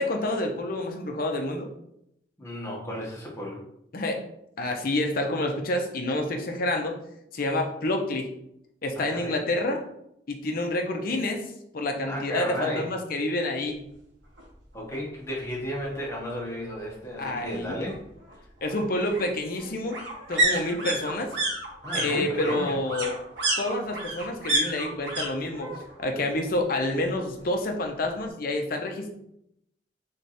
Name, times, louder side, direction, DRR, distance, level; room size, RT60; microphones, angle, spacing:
voice 1, 0.0-1.7 3.9-4.2 4.6-7.0 7.3-8.3 8.8-9.8 10.3-11.5 11.7-13.8 17.2-17.8 18.6-20.0 20.3-21.3 21.9-23.1 23.6-25.7 26.0-29.1, left 1 dB, 55° left, 3 dB, 0.8 m, -28 dB
voice 2, 2.4-3.6 8.9-9.3 12.1-12.9 14.7-18.0 21.8-22.8, left 1 dB, 15° left, -4 dB, 1.3 m, -33 dB
sound 1, 14.4-14.5 14.8-14.9 15.2-16.2 17.5-25.3 25.5-26.1 26.4-27.4 27.7-27.8, right 1 dB, 80° right, 1.3 m, -30 dB
3.7 x 3.4 x 4.2 m, 0.77 s
head